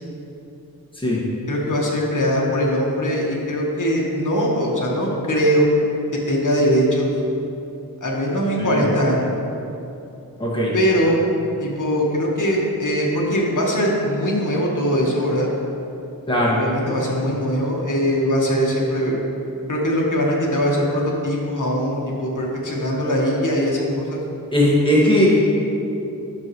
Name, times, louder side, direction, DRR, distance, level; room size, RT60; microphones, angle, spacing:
voice 1, 1.5-5.7 6.3-7.1 8.0-9.3 10.7-11.2 11.6-15.5 16.5-19.2 19.7-24.2, equal, 55° left, -3 dB, 1.5 m, -21 dB
voice 2, 10.4-10.7 16.3-16.6 24.5-25.3, equal, 15° left, -7 dB, 2.0 m, -18 dB
11.0 x 6.2 x 3.2 m, 2.8 s
wide cardioid pair, 60°, 36 cm